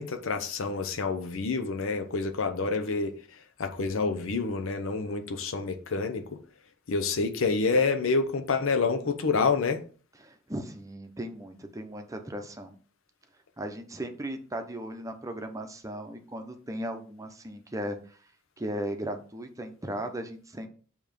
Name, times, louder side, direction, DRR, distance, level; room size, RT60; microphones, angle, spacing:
voice 1, 0.0-3.2 3.6-6.3 6.9-9.8, left 4 dB, 80° left, 0.7 m, -28 dB
voice 2, 10.2-12.7 13.6-18.2 18.6-20.7, right 1 dB, 15° right, 0.7 m, -37 dB
6.9 x 3.0 x 5.1 m
head